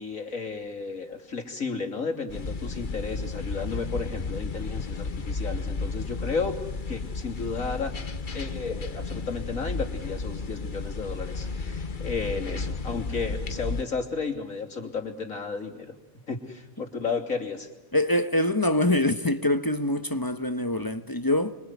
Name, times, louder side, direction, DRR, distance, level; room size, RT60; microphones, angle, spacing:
voice 1, 0.0-6.6 6.9-7.9 8.3-15.9 16.3-17.7, left 4 dB, 70° left, 3.6 m, -33 dB
sound 1, 2.3-13.8, left 4 dB, 40° left, 1.2 m, -33 dB
voice 2, 17.9-21.6, left 1 dB, 15° left, 1.1 m, -24 dB
27.5 x 24.5 x 8.3 m
omnidirectional pair, 1.4 m